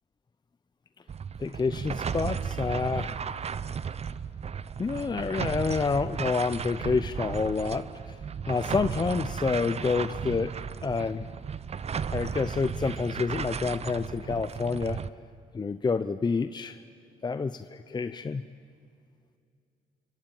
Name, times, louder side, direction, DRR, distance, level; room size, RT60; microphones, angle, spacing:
sound 1, 1.1-15.1, right 6 dB, 40° right, 0.8 m, -35 dB
voice 1, 1.4-3.2 4.8-8.1 8.5-10.5 10.8-11.3 12.1-15.0 15.5-16.8 17.2-18.4, left 4 dB, 25° left, 11 dB, 0.7 m, -28 dB
27.5 x 24.0 x 7.3 m, 2.5 s
supercardioid pair, 70°, 17 cm